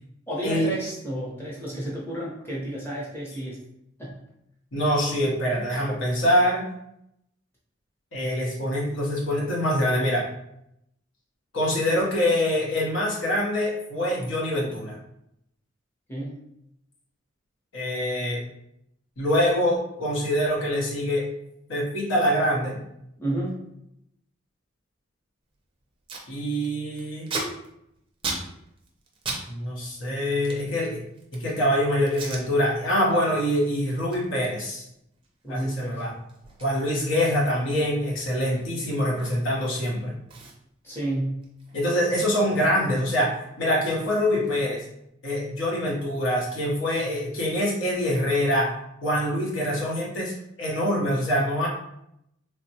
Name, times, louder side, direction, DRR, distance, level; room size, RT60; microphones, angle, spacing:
voice 1, 0.3-3.6 4.0-4.2 16.1-16.4 23.2-23.6 35.4-36.0 40.8-41.4, right 1 dB, 10° left, -6 dB, 0.8 m, -31 dB
voice 2, 4.7-6.6 8.1-10.3 11.5-15.0 17.7-18.4 19.2-21.2 21.7-22.8 26.3-27.3 29.5-31.0 31.3-34.8 35.5-36.1 36.6-40.1 41.7-44.8 45.2-48.7 49.0-50.3 50.6-51.7, equal, 70° left, -3 dB, 0.9 m, -24 dB
Packing tape duct tape, 25.5-25.6 25.8-26.3 26.6-29.4 29.7-31.5 32.1-32.4 32.9-33.1 33.5-39.7 39.9-40.0 40.3-42.7 42.9-44.9, right 3 dB, 25° right, 0.5 m, -39 dB
3.2 x 2.1 x 2.7 m, 0.77 s
head